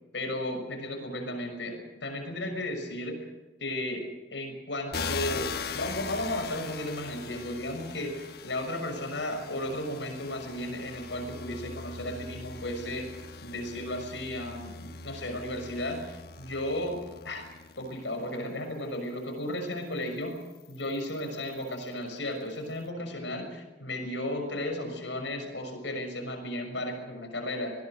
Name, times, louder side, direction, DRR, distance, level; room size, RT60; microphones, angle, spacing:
voice 1, 0.1-3.2 3.6-4.0 4.3-13.0 13.4-17.0 17.2-17.4 17.8-20.4 20.7-27.7, left 1 dB, 85° left, 4 dB, 6.3 m, -34 dB
sound 1, 4.9-18.3 19.0-21.9, left 5 dB, 60° left, 1.2 m, -41 dB
26.5 x 20.5 x 6.7 m, 1.1 s
head